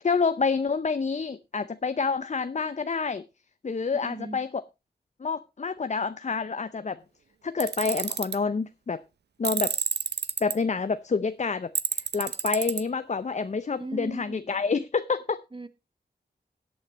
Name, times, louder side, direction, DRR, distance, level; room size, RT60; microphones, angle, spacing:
voice 1, 0.0-3.2 3.6-4.6 5.2-7.0 7.4-9.0 9.4-9.8 10.4-15.4, left 4 dB, 45° left, 0.6 m, -28 dB
voice 2, 4.0-4.4 13.8-14.5 15.5-15.7, right 2 dB, 30° right, 1.2 m, -38 dB
Tools, 7.6-8.4 9.4-10.5 11.8-12.8, right 7 dB, 75° right, 0.7 m, -29 dB
17.0 x 8.8 x 3.0 m
cardioid pair, 60°, 17 cm